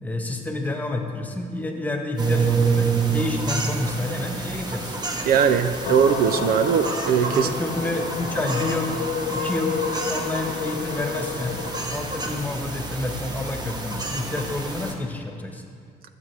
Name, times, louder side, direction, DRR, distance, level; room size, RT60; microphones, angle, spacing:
voice 1, 0.0-4.9 5.8-5.9 7.3-9.0 9.3-11.6 11.9-15.6, left 2 dB, 10° left, 3 dB, 1.3 m, -29 dB
sound 1, 2.2-14.9, right 4 dB, 25° right, 1.2 m, -28 dB
voice 2, 5.3-7.5, right 7 dB, 60° right, 10 dB, 0.5 m, -20 dB
sound 2, 5.8-14.7, left 6 dB, 80° left, 1.3 m, -32 dB
20.5 x 7.5 x 3.4 m, 2.3 s
cardioid pair, 110°, 17 cm